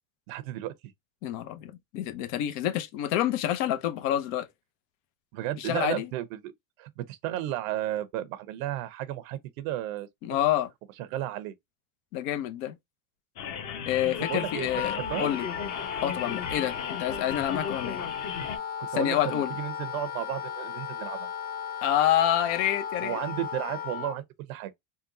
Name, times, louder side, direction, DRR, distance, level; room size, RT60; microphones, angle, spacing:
voice 1, 0.3-0.7 5.3-6.5 6.8-10.1 11.0-11.5 14.3-15.3 18.8-21.3 23.0-24.7, right 13 dB, 75° right, 0.7 m, -33 dB
voice 2, 1.2-4.5 5.6-6.1 10.2-10.7 12.1-12.8 13.9-15.5 16.0-18.0 18.9-19.5 21.8-23.2, left 11 dB, 70° left, 0.8 m, -28 dB
sound 1, 13.4-18.6, left 7 dB, 45° left, 1.1 m, -36 dB
Wind instrument woodwind instrument, 14.2-24.2, left 7 dB, 25° left, 0.4 m, -36 dB
3.8 x 2.2 x 2.6 m
supercardioid pair, 120°, 41 cm